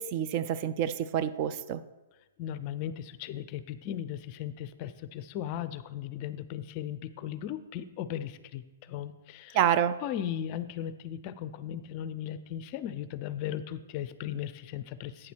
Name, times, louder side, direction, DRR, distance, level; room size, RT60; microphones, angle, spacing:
voice 1, 0.0-1.8 9.5-10.0, right 9 dB, 40° right, 13 dB, 0.3 m, -28 dB
voice 2, 2.4-9.6 10.0-15.3, left 10 dB, 35° left, 13 dB, 0.5 m, -37 dB
8.8 x 4.3 x 6.2 m, 1.1 s
hypercardioid pair, 145°, 0 cm